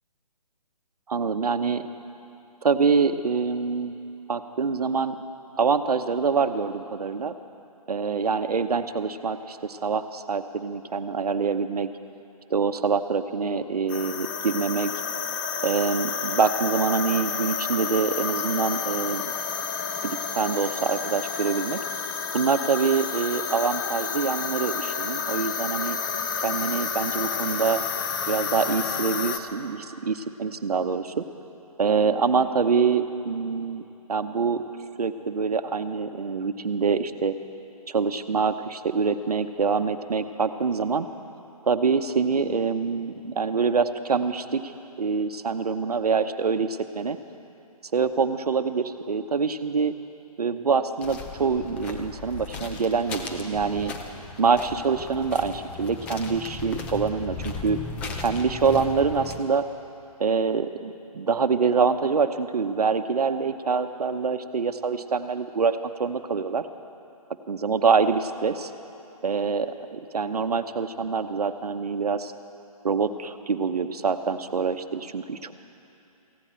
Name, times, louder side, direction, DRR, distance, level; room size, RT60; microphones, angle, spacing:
voice 1, 1.1-1.9 2.6-4.0 4.3-5.2 5.6-7.3 7.9-11.9 12.5-14.9 15.6-19.3 20.0-21.8 22.3-26.0 26.4-27.8 28.3-31.2 31.8-33.8 34.1-34.6 35.0-37.3 37.9-41.1 41.6-44.7 45.0-47.2 47.9-49.9 50.4-53.9 54.4-57.8 58.2-59.7 60.2-66.7 67.5-68.7 69.2-72.3 72.8-75.5, right 5 dB, 75° right, 10 dB, 0.9 m, -25 dB
sound 1, 13.9-29.4, left 6 dB, 30° left, 0.8 m, -30 dB
sound 2, 51.0-59.4, left 3 dB, 5° left, 0.3 m, -37 dB
18.0 x 15.5 x 4.4 m, 2.8 s
figure-of-eight pair, 145°, 20 cm